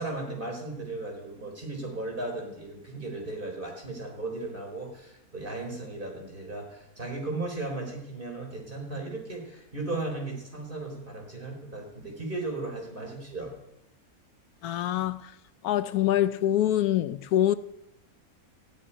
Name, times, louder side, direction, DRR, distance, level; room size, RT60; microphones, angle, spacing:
voice 1, 0.0-13.5, right 2 dB, 35° right, 4.4 m, -36 dB
voice 2, 14.6-15.3 15.6-17.5, left 12 dB, 85° left, 1.2 m, -25 dB
15.0 x 7.6 x 10.0 m
omnidirectional pair, 1.5 m